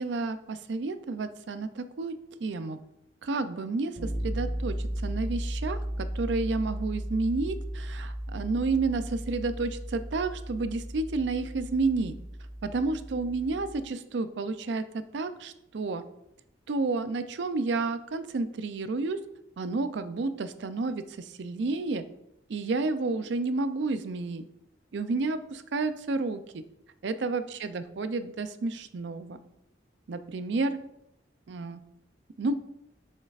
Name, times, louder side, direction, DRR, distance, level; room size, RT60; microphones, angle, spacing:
voice 1, 0.0-2.1 2.4-2.8 3.2-4.7 5.0-12.2 12.6-16.0 16.7-19.2 19.6-22.0 22.5-24.4 24.9-26.6 27.0-29.4 30.1-30.8 31.5-31.8 32.4-32.6, right 3 dB, 70° right, 11 dB, 0.4 m, -30 dB
sound 1, 3.9-13.8, right 1 dB, 25° right, 2.0 m, -35 dB
6.5 x 6.4 x 2.4 m, 0.82 s
head